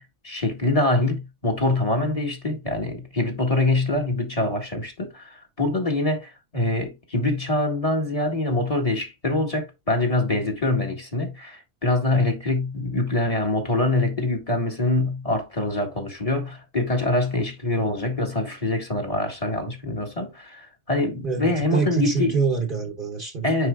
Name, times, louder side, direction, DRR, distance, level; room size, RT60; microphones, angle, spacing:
voice 1, 0.0-22.3 23.4-23.7, left 2 dB, 25° left, 1.7 m, -24 dB
voice 2, 21.2-23.5, right 5 dB, 45° right, 1.2 m, -25 dB
10.0 x 4.4 x 2.3 m
omnidirectional pair, 1.4 m